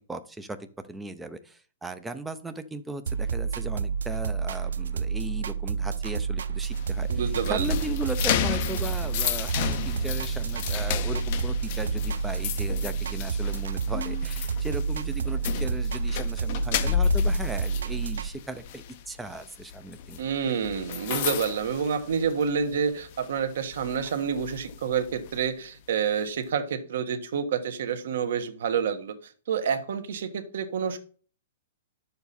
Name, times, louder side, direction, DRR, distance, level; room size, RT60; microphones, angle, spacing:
voice 1, 0.1-20.2, right 2 dB, 5° right, 10 dB, 0.5 m, -37 dB
sound 1, 3.1-18.3, right 6 dB, 90° right, 0.6 m, -30 dB
sound 2, 6.7-22.6 23.0-23.3 23.7-25.4, left 8 dB, 35° left, 0.6 m, -32 dB
voice 2, 7.1-7.7 20.2-31.0, right 7 dB, 60° right, 9 dB, 1.3 m, -28 dB
10.5 x 7.0 x 4.2 m, 0.41 s
hypercardioid pair, 175°, 0 cm